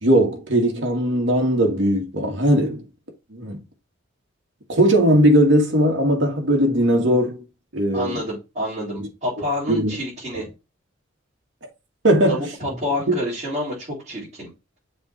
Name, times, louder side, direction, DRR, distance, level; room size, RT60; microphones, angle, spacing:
voice 1, 0.0-2.8 3.3-3.6 4.7-7.4 7.7-8.2 9.0-9.1 9.7-9.9 10.3-10.4 12.0-12.4 13.1-13.2, right 1 dB, 65° right, 2.2 m, -19 dB
voice 2, 7.9-10.4 12.3-14.5, left 1 dB, 35° right, 4.3 m, -28 dB
7.2 x 3.6 x 4.6 m
head